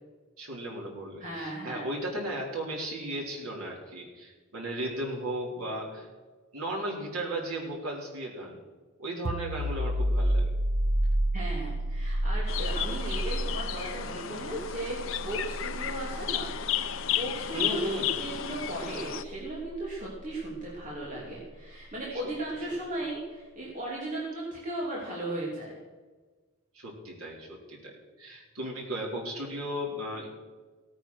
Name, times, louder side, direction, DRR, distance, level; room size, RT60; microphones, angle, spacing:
voice 1, 0.4-6.1 6.5-8.6 9.0-10.5 17.5-18.2 22.1-22.2 26.7-30.3, right 1 dB, 85° right, -2 dB, 4.2 m, -35 dB
voice 2, 1.2-1.9 11.3-16.5 16.9-25.8, right 1 dB, 35° right, -5 dB, 3.0 m, -36 dB
sound 1, 9.2-20.7, right 1 dB, 60° right, 0.8 m, -31 dB
sound 2, 12.5-19.2, left 10 dB, 60° left, 0.7 m, -33 dB
17.5 x 9.2 x 6.4 m, 1.3 s
head